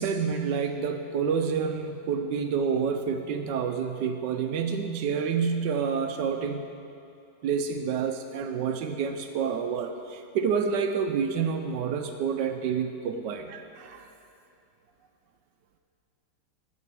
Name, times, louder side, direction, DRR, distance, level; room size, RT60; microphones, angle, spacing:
voice 1, 0.0-6.6 7.4-14.1, right 6 dB, 75° right, 6 dB, 1.0 m, -28 dB
12.5 x 6.9 x 4.6 m, 2.8 s
omnidirectional pair, 2.2 m